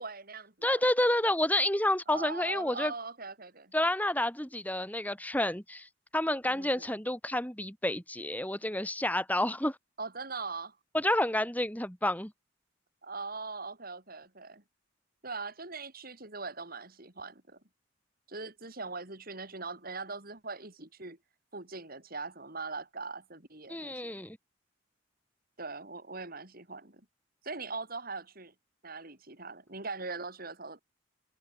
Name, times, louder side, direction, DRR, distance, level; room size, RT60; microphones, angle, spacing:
voice 1, 0.0-0.8 2.1-3.7 6.5-6.9 10.0-10.8 13.0-14.6 15.2-17.6 18.3-21.2 21.5-24.1 25.6-27.0 27.4-28.5 28.8-30.8, right 4 dB, 50° right, 6.0 m, -41 dB
voice 2, 0.6-2.9 3.7-9.8 10.9-12.3 23.7-24.4, left 1 dB, 10° left, 7.1 m, -29 dB
head